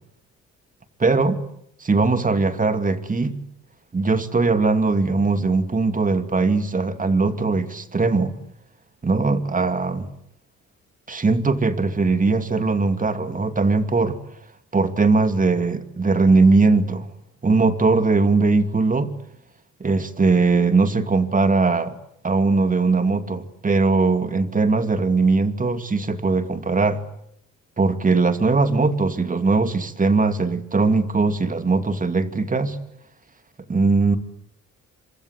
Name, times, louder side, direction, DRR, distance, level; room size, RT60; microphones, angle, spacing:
voice 1, 1.0-1.4 1.8-3.4 3.9-8.4 9.0-10.1 11.1-14.2 14.7-17.1 17.4-19.1 19.8-22.0 22.2-27.0 27.8-32.8 33.7-34.2, right 3 dB, 25° right, 2.6 m, -20 dB
26.5 x 25.5 x 8.3 m
cardioid pair, 90°, 30 cm